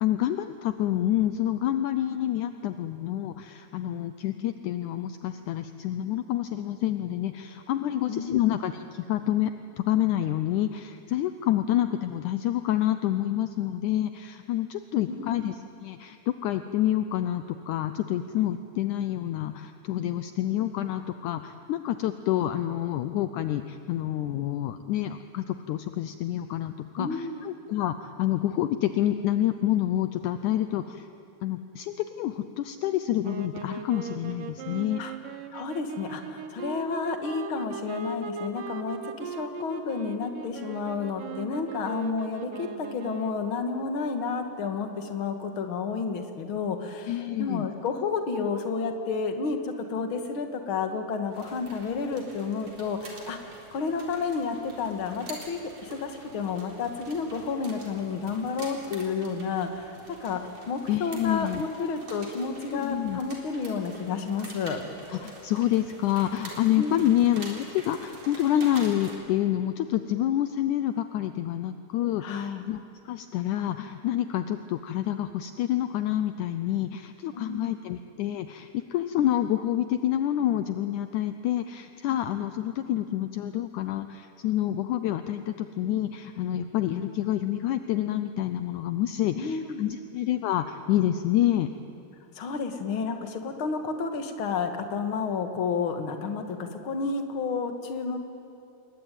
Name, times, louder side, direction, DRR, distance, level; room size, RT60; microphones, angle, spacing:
voice 1, 0.0-9.5 9.8-31.1 31.4-35.0 47.1-47.7 60.9-61.6 62.7-63.2 65.1-91.7, left 12 dB, 75° left, 10 dB, 2.1 m, -28 dB
voice 2, 8.1-8.5 15.1-15.4 27.0-27.3 35.0-35.1 35.5-60.0 60.2-64.8 66.8-67.1 72.2-72.7 77.3-77.7 89.3-89.9 92.4-98.2, left 5 dB, 45° left, 6 dB, 2.3 m, -31 dB
sound 1, 33.2-43.6, right 5 dB, 80° right, 2.9 m, -39 dB
sound 2, 51.3-69.2, right 2 dB, 50° right, 4.9 m, -46 dB
28.0 x 22.0 x 9.2 m, 2.7 s
omnidirectional pair, 3.8 m